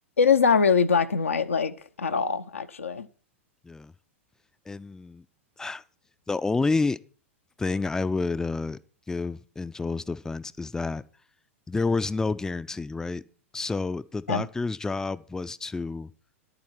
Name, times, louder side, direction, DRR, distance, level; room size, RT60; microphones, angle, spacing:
voice 1, 0.2-3.1 14.3-14.4, left 6 dB, 75° left, 0.8 m, -23 dB
voice 2, 4.7-5.2 5.6-5.8 6.3-7.0 7.6-8.8 9.1-11.0 11.7-13.2 13.5-16.1, left 3 dB, 10° left, 0.5 m, -29 dB
11.0 x 8.9 x 6.1 m
figure-of-eight pair, 95°, 7 cm